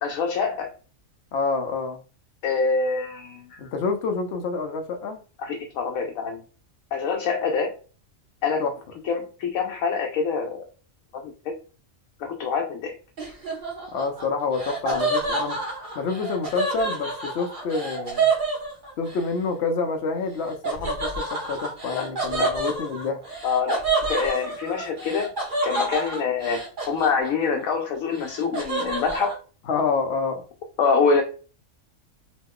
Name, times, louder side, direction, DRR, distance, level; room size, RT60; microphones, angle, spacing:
voice 1, 0.0-0.7 2.4-3.6 5.4-6.4 6.9-7.8 8.4-8.6 9.0-10.6 11.1-11.5 12.2-13.0 14.9-15.0 21.9-22.6 23.4-25.3 25.6-29.3 30.8-31.2, left 5 dB, 90° left, 1.0 m, -25 dB
voice 2, 1.3-2.0 3.6-5.2 8.6-8.7 13.9-15.6 16.0-18.3 19.0-23.2 29.7-30.4, left 4 dB, 60° left, 0.8 m, -27 dB
Laughter, 13.2-19.2 20.6-27.6 27.9-29.3, right 3 dB, 40° right, 1.2 m, -28 dB
3.0 x 2.2 x 3.6 m
omnidirectional pair, 1.4 m